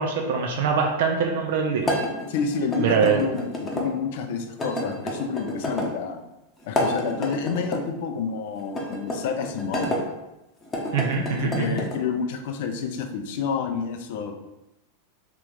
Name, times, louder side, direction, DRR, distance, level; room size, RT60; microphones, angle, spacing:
voice 1, 0.0-1.9 2.8-3.2 10.9-11.8, right 5 dB, 55° right, 2 dB, 0.5 m, -23 dB
sound 1, 1.8-3.9 4.6-5.9 6.6-7.8 8.7-10.0 10.6-12.0, left 1 dB, 15° left, 0.8 m, -29 dB
voice 2, 2.3-6.2 6.6-9.9 11.3-14.3, left 5 dB, 50° left, 6 dB, 0.5 m, -29 dB
3.3 x 3.0 x 3.8 m, 0.94 s
figure-of-eight pair, 90°, 0 cm